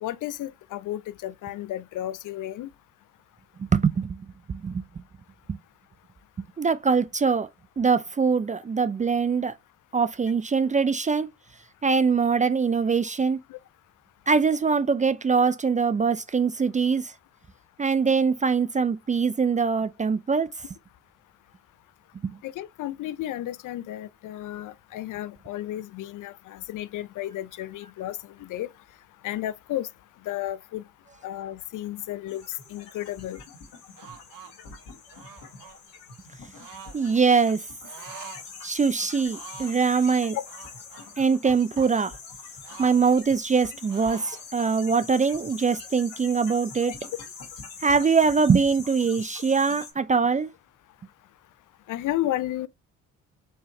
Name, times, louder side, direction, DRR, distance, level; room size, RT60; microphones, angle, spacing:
voice 1, 0.0-2.7 13.5-13.6 22.4-28.7 29.2-29.9 30.3-30.8 31.2-32.4 32.7-33.4 40.3-40.4 51.9-52.7, left 13 dB, 50° left, 0.4 m, -33 dB
voice 2, 3.6-4.8 5.5-5.6 6.6-7.5 7.8-9.6 9.9-11.3 11.8-13.4 14.3-17.1 17.8-20.5 22.2-22.3 36.9-37.6 38.6-40.4 41.2-42.1 42.8-46.9 47.8-50.5, right 5 dB, 20° right, 0.4 m, -23 dB
sound 1, 32.3-49.9, left 5 dB, 75° left, 1.6 m, -44 dB
sound 2, 33.9-34.5 35.1-35.8 36.5-37.0 37.8-38.4 38.8-38.9 39.2-39.8 40.5-41.9 42.6-43.6 43.9-44.5, right 6 dB, 55° right, 1.1 m, -45 dB
4.4 x 3.2 x 2.8 m
hypercardioid pair, 50°, 41 cm